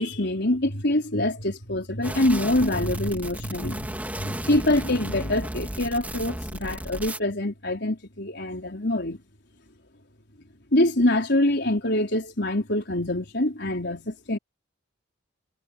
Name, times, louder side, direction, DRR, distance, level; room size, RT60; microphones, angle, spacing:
voice 1, 0.0-9.2 10.7-14.4, left 1 dB, 55° left, 4.8 m, -25 dB
sound 1, 2.0-7.2, right 1 dB, 10° right, 2.9 m, -34 dB
head